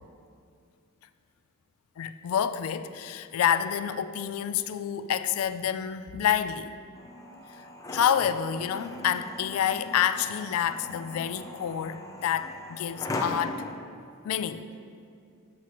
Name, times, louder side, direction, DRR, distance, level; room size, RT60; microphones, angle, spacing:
voice 1, 2.0-6.7 7.9-13.7 14.2-14.7, left 9 dB, 80° left, 12 dB, 0.3 m, -28 dB
sound 1, 6.9-13.7, left 1 dB, 15° left, 0.5 m, -39 dB
7.6 x 7.2 x 3.0 m, 2.4 s
head